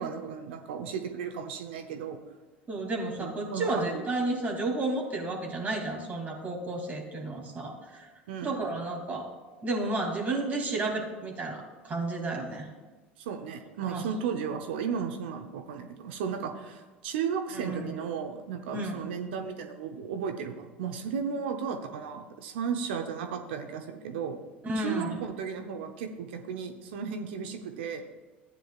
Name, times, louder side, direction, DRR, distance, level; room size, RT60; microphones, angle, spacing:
voice 1, 0.0-2.2 3.2-4.0 8.3-8.7 13.2-24.4 24.8-28.0, right 6 dB, 65° right, 6 dB, 0.9 m, -35 dB
voice 2, 2.7-8.1 8.4-9.3 9.6-12.7 13.8-14.0 17.5-17.9 18.7-19.0 24.6-25.1, right 2 dB, 25° right, 0 dB, 2.8 m, -32 dB
15.0 x 9.3 x 2.5 m, 1.3 s
figure-of-eight pair, 75°, 6 cm